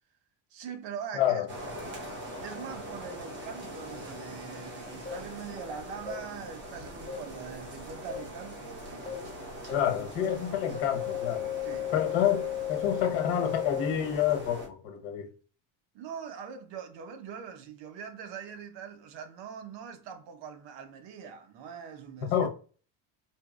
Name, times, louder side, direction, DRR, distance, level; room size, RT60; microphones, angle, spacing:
voice 1, 0.5-1.5 2.4-9.3 11.6-11.9 15.9-22.5, right 7 dB, 65° right, 0.8 m, -42 dB
sound 1, 1.5-14.7, equal, 25° right, 1.0 m, -42 dB
sound 2, 5.1-5.2 6.1-6.2 7.1-7.2 8.1-8.2 9.1-9.2 9.7-9.8 10.2-10.3 10.7-13.9, left 12 dB, 10° left, 0.6 m, -34 dB
voice 2, 9.7-11.5 11.9-15.3 22.3-22.5, left 9 dB, 75° left, 1.1 m, -28 dB
4.5 x 3.0 x 2.4 m
cardioid pair, 180°, 47 cm